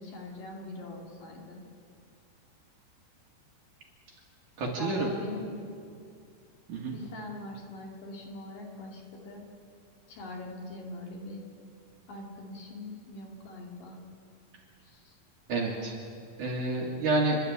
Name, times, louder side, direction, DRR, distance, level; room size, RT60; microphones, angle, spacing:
voice 1, 0.0-1.6 4.8-5.6 6.9-9.4 10.1-11.4 12.1-14.0 14.8-15.2, left 2 dB, 55° left, 0 dB, 3.8 m, -42 dB
voice 2, 4.6-5.1 6.7-6.9 15.5-15.9 16.4-17.4, right 2 dB, 55° right, -1 dB, 2.8 m, -29 dB
29.0 x 11.5 x 8.6 m, 2.3 s
omnidirectional pair, 5.0 m